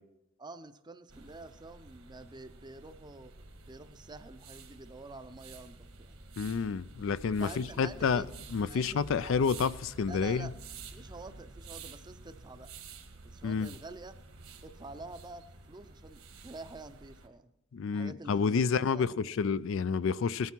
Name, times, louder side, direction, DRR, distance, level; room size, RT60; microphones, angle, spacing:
voice 1, 0.4-3.3 3.6-6.2 7.4-8.3 8.7-9.4 10.0-10.5 10.9-12.7 13.2-14.2 14.6-17.5 17.9-19.1, right 2 dB, 20° right, 0.6 m, -48 dB
sound 1, 1.1-17.3, right 3 dB, 75° right, 1.6 m, -50 dB
voice 2, 6.4-8.2 8.5-10.5 13.4-13.7 17.7-20.5, left 5 dB, 65° left, 0.4 m, -29 dB
18.5 x 9.4 x 4.5 m
head